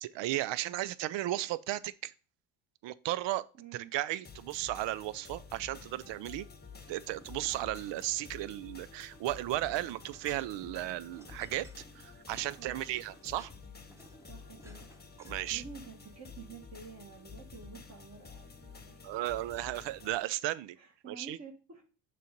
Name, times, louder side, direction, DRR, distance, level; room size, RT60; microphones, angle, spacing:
voice 1, 0.0-2.1 2.8-3.4 3.7-6.5 6.9-11.7 12.0-13.5 15.2-15.6 19.0-20.8 21.1-21.4, right 15 dB, 65° right, 0.6 m, -35 dB
voice 2, 3.5-3.9 12.5-13.0 14.3-14.9 15.2-19.4 20.7-21.9, right 5 dB, 35° right, 1.5 m, -50 dB
sound 1, 4.2-20.2, left 5 dB, 20° left, 1.0 m, -51 dB
sound 2, 6.7-8.4 8.8-15.8, right 1 dB, 5° right, 1.0 m, -58 dB
6.7 x 3.1 x 5.0 m
supercardioid pair, 70°, 48 cm